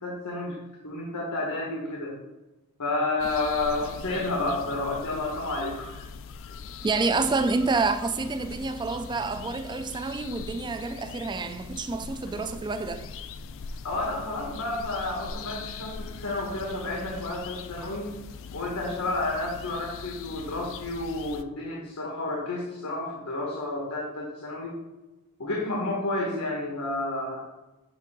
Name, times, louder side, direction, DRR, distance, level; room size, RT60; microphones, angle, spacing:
voice 1, 0.0-0.6 0.8-2.2 2.8-6.0 13.8-18.1 18.5-24.8 25.4-27.4, left 2 dB, 90° left, 1.2 m, -30 dB
sound 1, 3.2-21.4, left 5 dB, 60° left, 0.4 m, -41 dB
voice 2, 6.8-13.1, right 3 dB, 20° right, 0.3 m, -28 dB
7.7 x 2.6 x 5.2 m
head